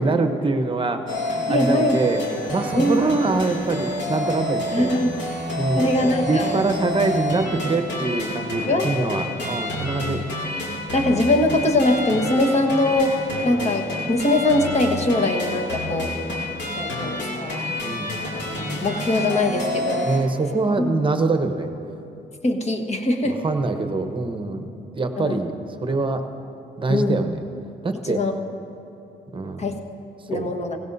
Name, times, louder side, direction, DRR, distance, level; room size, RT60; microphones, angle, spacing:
voice 1, 0.0-2.2 2.5-4.9 5.6-5.9 6.3-10.2 17.8-18.2 20.0-21.7 23.2-24.7 24.9-26.3 26.8-27.4 27.8-28.2 29.3-29.7 30.3-30.5, right 3 dB, 25° right, 6 dB, 1.0 m, -24 dB
sound 1, 1.1-20.2, left 1 dB, 65° left, 2.6 m, -29 dB
voice 2, 1.5-2.0 2.7-3.0 4.7-5.1 5.7-6.6 8.7-9.2 10.9-16.1 16.8-17.7 18.6-20.1 20.8-20.9 22.4-23.4 25.2-25.4 26.9-27.2 28.1-28.3 29.6-29.7 30.3-30.8, left 1 dB, 35° left, 4 dB, 1.4 m, -22 dB
16.5 x 16.5 x 2.7 m, 2.9 s
cardioid pair, 90°, 20 cm